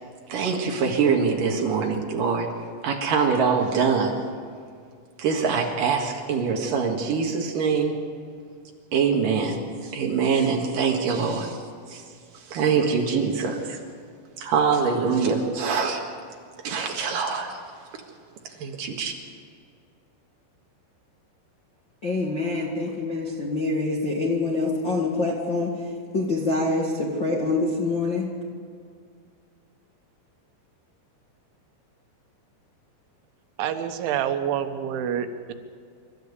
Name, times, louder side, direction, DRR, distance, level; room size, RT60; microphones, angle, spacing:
voice 1, 0.3-2.5 2.8-4.2 5.2-7.9 8.9-11.6 11.9-12.0 12.5-13.8 14.4-16.0 16.6-17.6 18.6-19.1, right 5 dB, 55° right, 2 dB, 3.0 m, -24 dB
voice 2, 22.0-25.8 26.1-28.3, left 3 dB, 50° left, -2 dB, 1.4 m, -25 dB
voice 3, 33.6-35.5, right 9 dB, 90° right, 8 dB, 3.5 m, -27 dB
26.5 x 13.5 x 8.3 m, 2.2 s
omnidirectional pair, 5.2 m